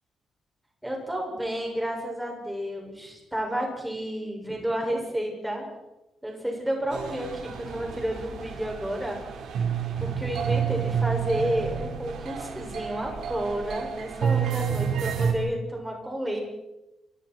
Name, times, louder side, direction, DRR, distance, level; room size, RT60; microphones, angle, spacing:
voice 1, 0.8-5.6 6.2-9.2 10.0-16.4, right 1 dB, 5° right, 0 dB, 6.7 m, -31 dB
sound 1, 6.9-15.3, right 7 dB, 85° right, 5.0 m, -29 dB
29.0 x 25.0 x 4.7 m, 0.96 s
wide cardioid pair, 170°, 0 cm